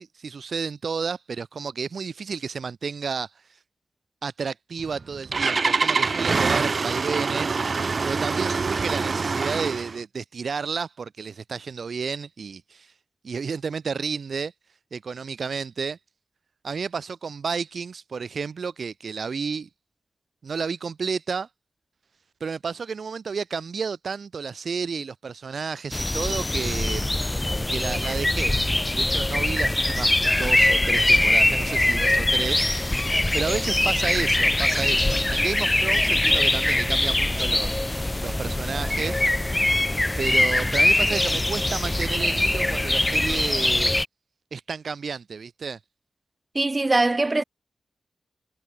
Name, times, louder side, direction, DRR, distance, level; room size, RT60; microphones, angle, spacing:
voice 1, 0.0-3.3 4.2-7.6 8.0-12.9 13.2-14.5 14.9-16.0 16.6-19.7 20.4-21.5 22.4-27.1 27.7-28.6 29.0-30.1 30.4-32.8 33.3-39.2 40.2-43.9 44.5-45.8, right 5 dB, 65° right, 0.8 m, -31 dB
Engine starting, 4.8-10.0, right 4 dB, 50° right, 1.4 m, -25 dB
sound 1, 25.9-44.1, left 1 dB, 15° left, 0.3 m, -22 dB
voice 2, 46.5-47.4, right 2 dB, 25° right, 0.7 m, -21 dB
wide cardioid pair, 85°, 0 cm